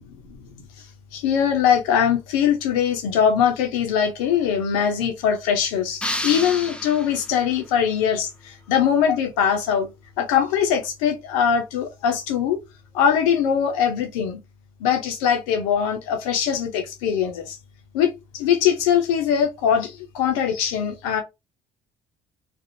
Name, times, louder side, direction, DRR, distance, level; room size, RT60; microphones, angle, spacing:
voice 1, 1.1-9.9 10.2-12.6 12.9-14.4 14.8-17.6 17.9-21.2, left 8 dB, 85° left, 0.7 m, -22 dB
sound 1, 6.0-7.5, left 1 dB, 5° left, 0.5 m, -30 dB
2.6 x 2.3 x 2.6 m
hypercardioid pair, 60°, 17 cm